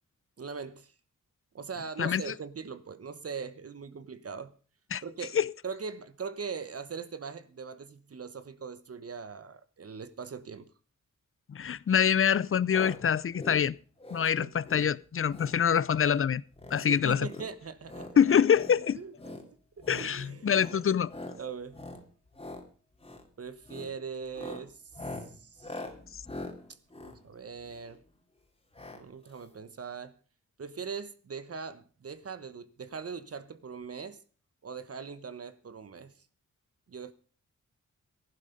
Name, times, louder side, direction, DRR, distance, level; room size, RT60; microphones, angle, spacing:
voice 1, 0.4-0.9 1.5-4.5 5.0-5.4 5.6-10.7 14.4-14.5 16.7-18.3 18.9-19.4 19.8-20.8 21.4-21.8 23.4-25.1 25.4-25.8 27.0-28.0 28.9-30.1 30.6-34.2 34.6-36.1 36.9-37.1, right 5 dB, 50° right, 1.2 m, -41 dB
voice 2, 2.0-2.3 4.9-5.0 5.3-5.5 11.5-13.8 14.1-16.4 16.7-17.3 18.2-19.0 19.9-21.1, left 8 dB, 45° left, 0.6 m, -25 dB
sound 1, 12.7-13.0 13.3-13.6 14.0-14.3 14.6-14.9 15.3-15.6 15.9-16.2 16.5-16.8 17.2-18.1 18.5-18.8 19.1-19.4 19.8-20.1 20.5-20.8 21.1-21.4 21.7-22.0 22.3-22.6 23.0-23.3 23.6-23.9 24.3-28.0 28.7-29.0 29.3-29.4 29.6-29.7, left 2 dB, 20° left, 3.0 m, -43 dB
15.0 x 11.5 x 5.2 m
wide cardioid pair, 95°, 29 cm